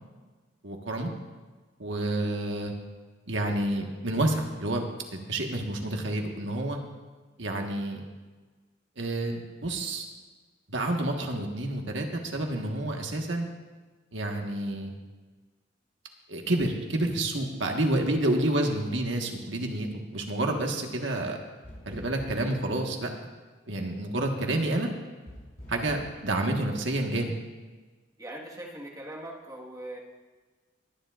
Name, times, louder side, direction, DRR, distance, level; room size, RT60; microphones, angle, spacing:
voice 1, 0.6-1.1 1.8-2.7 3.3-4.8 5.3-6.8 7.4-8.0 9.0-10.1 10.7-13.5 14.1-14.9 16.3-21.4 21.8-23.1 23.7-24.9 25.7-27.3, right 1 dB, 80° right, 2 dB, 1.5 m, -29 dB
sound 1, 21.6-22.6 25.3-26.2, equal, 45° left, 3.2 m, -45 dB
voice 2, 28.2-30.0, right 1 dB, 20° right, -2 dB, 1.6 m, -41 dB
20.5 x 10.5 x 2.5 m, 1.3 s
head